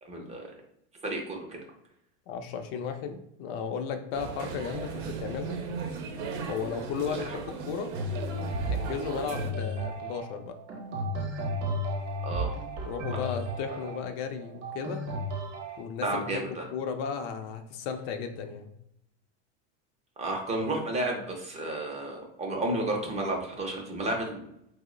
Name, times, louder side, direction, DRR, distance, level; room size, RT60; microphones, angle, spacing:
voice 1, 0.0-0.5 1.0-1.6 7.1-7.2 12.2-12.5 13.1-13.3 13.7-13.8 16.0-16.6 20.2-24.5, right 2 dB, 20° right, 0 dB, 0.4 m, -32 dB
voice 2, 2.3-5.6 6.5-7.9 8.7-10.6 12.8-15.0 15.8-16.4 16.7-18.7, left 6 dB, 55° left, 6 dB, 0.5 m, -35 dB
sound 1, 4.1-9.5, right 4 dB, 75° right, 0.6 m, -37 dB
sound 2, 7.9-15.8, equal, 45° right, 0.8 m, -34 dB
2.9 x 2.0 x 3.7 m, 0.76 s
supercardioid pair, 130°, 35 cm